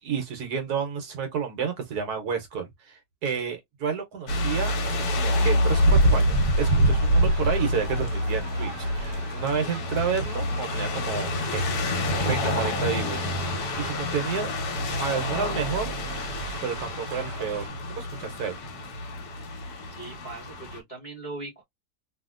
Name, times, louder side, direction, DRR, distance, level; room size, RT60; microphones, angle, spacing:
voice 1, 0.0-11.7 12.2-14.5 15.0-15.9 16.6-17.6 17.9-18.6, right 6 dB, 65° right, 1.3 m, -30 dB
sound 1, 4.3-20.8, left 1 dB, 70° left, 1.5 m, -28 dB
sound 2, 5.7-17.7, right 2 dB, 85° right, 1.4 m, -29 dB
voice 2, 19.9-21.6, right 3 dB, 25° left, 1.2 m, -39 dB
2.8 x 2.8 x 2.3 m
omnidirectional pair, 1.8 m